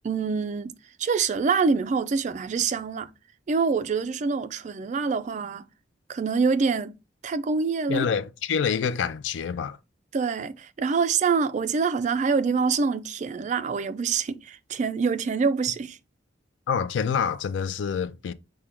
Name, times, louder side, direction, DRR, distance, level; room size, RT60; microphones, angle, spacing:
voice 1, 0.0-0.7 1.0-3.1 3.5-5.6 6.1-6.9 7.2-8.1 10.1-16.0, right 5 dB, 40° right, 0.3 m, -25 dB
voice 2, 7.9-9.8 16.7-18.3, left 7 dB, 75° left, 0.4 m, -27 dB
5.8 x 2.2 x 3.5 m
head